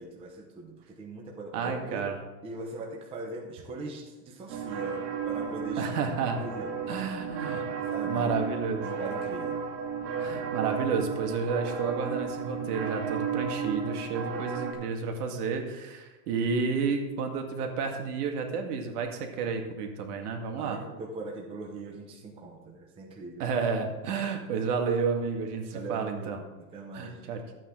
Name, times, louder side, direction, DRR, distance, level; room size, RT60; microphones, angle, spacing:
voice 1, 0.0-2.1 2.4-7.1 7.8-8.3 8.8-9.6 20.6-23.4 25.7-27.3, right 2 dB, 10° right, 0 dB, 0.8 m, -41 dB
voice 2, 1.5-2.2 5.8-6.4 6.9-7.6 8.0-8.9 10.2-20.8 23.4-26.4 26.9-27.4, right 5 dB, 65° right, 3 dB, 2.0 m, -31 dB
sound 1, 4.5-14.7, right 6 dB, 85° right, 2.3 m, -33 dB
12.5 x 8.6 x 3.8 m, 1.2 s
supercardioid pair, 170°, 50 cm